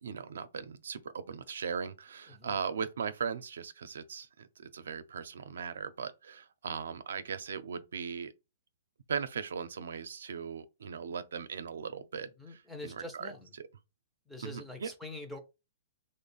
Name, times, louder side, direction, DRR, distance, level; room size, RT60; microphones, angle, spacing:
voice 1, 0.0-8.3 9.1-13.3 13.6-13.7 14.4-14.9, right 6 dB, 85° right, 0.5 m, -38 dB
voice 2, 12.4-13.5 14.3-15.4, left 2 dB, ahead, 0.4 m, -44 dB
3.1 x 2.0 x 3.9 m
hypercardioid pair, 175°, 0 cm